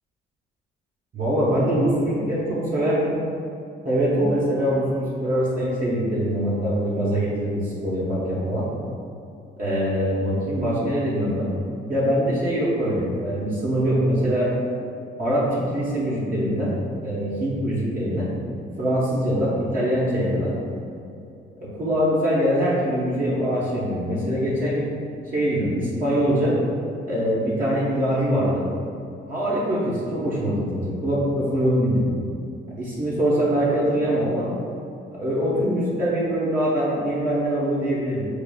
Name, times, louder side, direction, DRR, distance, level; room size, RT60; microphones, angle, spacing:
voice 1, 1.1-3.1 3.8-8.7 9.6-11.5 11.9-14.5 15.2-16.7 17.0-18.3 18.8-20.5 21.6-24.9 25.3-26.6 27.1-28.6 29.3-32.1 32.8-34.5 35.1-38.3, equal, 45° right, -8 dB, 1.1 m, -23 dB
6.8 x 2.6 x 2.3 m, 2.6 s
cardioid pair, 90°, 20 cm